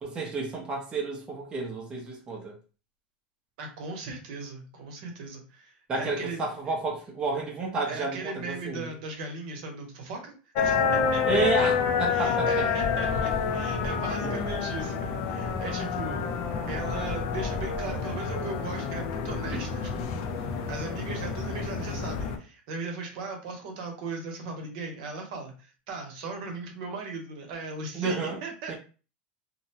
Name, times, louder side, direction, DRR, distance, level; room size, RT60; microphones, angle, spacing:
voice 1, 0.0-2.5 5.9-8.9 11.3-12.5 14.2-14.3 27.9-28.4 28.7-28.8, right 3 dB, 20° right, -1 dB, 0.6 m, -30 dB
voice 2, 3.6-6.7 7.8-11.7 12.1-16.2 16.7-28.7, right 3 dB, 65° right, 2 dB, 0.9 m, -38 dB
sound 1, 10.6-22.4, left 5 dB, 50° left, 0.5 m, -28 dB
2.6 x 2.1 x 2.8 m, 0.36 s
supercardioid pair, 155°, 5 cm